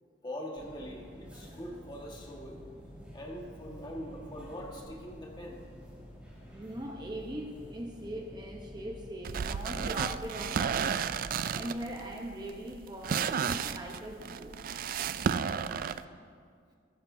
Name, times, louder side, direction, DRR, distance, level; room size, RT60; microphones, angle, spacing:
voice 1, 0.2-2.6 3.1-5.6, equal, 25° left, -1 dB, 1.6 m, -42 dB
sound 1, 0.6-10.9, equal, 10° right, 3.2 m, -50 dB
voice 2, 6.5-11.0 11.5-14.6, equal, 25° right, 1 dB, 0.9 m, -41 dB
sound 2, 9.2-16.0, right 7 dB, 50° right, 0.3 m, -33 dB
15.0 x 13.0 x 2.7 m, 2.1 s
head